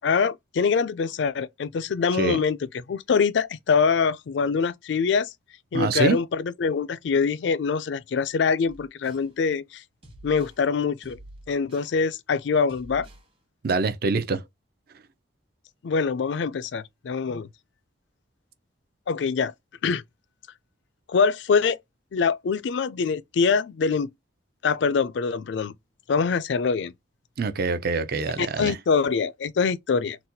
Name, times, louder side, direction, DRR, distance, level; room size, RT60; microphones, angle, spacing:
voice 1, 0.0-5.3 5.7-9.8 10.2-11.2 11.5-13.1 15.8-17.5 19.1-19.5 19.8-20.0 21.1-21.8 22.1-24.1 24.6-25.7 26.1-26.9 28.4-30.2, left 5 dB, 65° left, 0.4 m, -24 dB
voice 2, 5.7-6.2 13.6-14.4 27.4-28.8, right 4 dB, 50° right, 0.5 m, -25 dB
sound 1, 8.7-9.3 10.0-10.6 11.0-11.9 12.7-13.3, right 1 dB, 30° right, 1.1 m, -47 dB
4.0 x 2.2 x 2.6 m
head